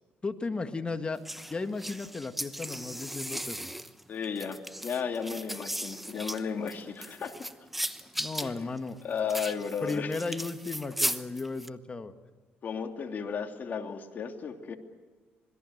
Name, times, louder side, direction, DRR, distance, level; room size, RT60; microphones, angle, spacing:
voice 1, 0.2-1.2 1.5-3.7 8.2-9.0 9.8-12.1, left 3 dB, 25° left, 7 dB, 1.8 m, -35 dB
sound 1, 1.3-11.7, equal, 5° right, 1.0 m, -37 dB
voice 2, 4.1-7.4 8.4-8.7 9.0-10.1 12.6-14.8, left 6 dB, 50° left, 4 dB, 2.8 m, -34 dB
26.5 x 21.0 x 6.7 m, 1.4 s
cardioid pair, 95°, 4 cm